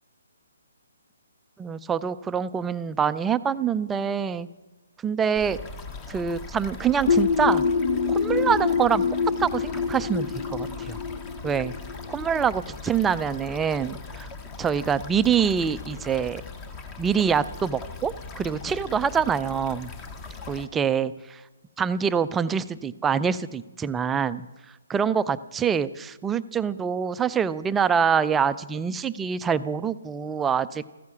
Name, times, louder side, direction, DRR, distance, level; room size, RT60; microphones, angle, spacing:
voice 1, 1.6-4.5 5.0-5.6 6.1-7.6 8.1-9.0 9.4-11.0 11.4-11.7 12.1-14.3 14.6-16.4 17.0-19.9 20.5-21.4 21.8-24.5 24.9-30.8, right 7 dB, 10° right, 13 dB, 0.5 m, -25 dB
sound 1, 5.3-20.7, left 4 dB, 20° left, 1.3 m, -40 dB
sound 2, 7.1-12.6, left 5 dB, 45° left, 0.8 m, -25 dB
15.0 x 14.5 x 5.9 m, 1.1 s
figure-of-eight pair, 140°, 0 cm